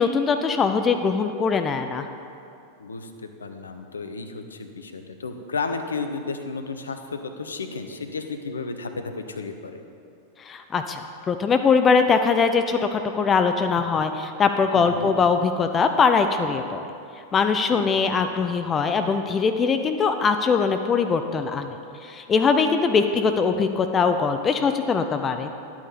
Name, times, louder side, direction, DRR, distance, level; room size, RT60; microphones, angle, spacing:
voice 1, 0.0-2.0 10.4-16.8 17.3-21.8 22.0-25.5, left 5 dB, 20° left, 7 dB, 0.5 m, -22 dB
voice 2, 2.8-9.8 14.7-15.1 17.7-17.8, left 4 dB, 75° left, 7 dB, 0.7 m, -33 dB
11.0 x 8.6 x 4.2 m, 2.6 s
figure-of-eight pair, 90°, 0 cm